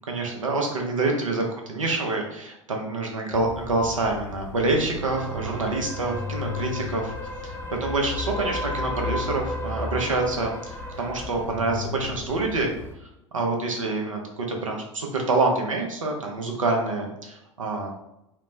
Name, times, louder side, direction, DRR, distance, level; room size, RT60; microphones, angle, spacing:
voice 1, 0.1-1.4 1.7-7.1 7.4-7.5 7.8-12.7 13.3-17.9, right 3 dB, 80° right, 1 dB, 0.7 m, -26 dB
sound 1, 3.3-12.9, left 2 dB, 15° left, 0.5 m, -34 dB
3.3 x 2.1 x 3.1 m, 0.85 s
figure-of-eight pair, 80°, 16 cm